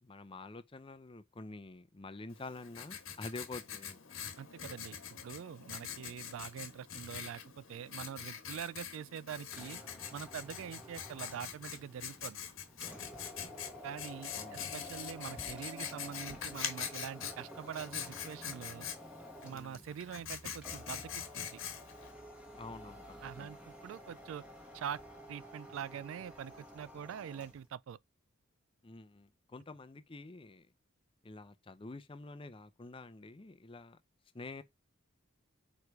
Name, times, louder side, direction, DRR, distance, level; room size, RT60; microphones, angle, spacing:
voice 1, 0.0-4.0 14.4-14.7 19.5-19.8 22.6-23.0 23.4-23.6 28.8-30.7 31.2-34.0 34.3-34.6, left 2 dB, 25° left, 0.6 m, -48 dB
Writing, 2.3-22.1, left 8 dB, 80° left, 1.3 m, -44 dB
voice 2, 4.4-9.8 10.1-12.4 13.8-18.9 19.4-21.6 23.2-24.4 24.7-25.0 25.3-28.0, right 8 dB, 70° right, 0.3 m, -44 dB
sound 1, 9.4-27.7, left 1 dB, 5° right, 1.3 m, -51 dB
4.9 x 4.7 x 4.7 m
head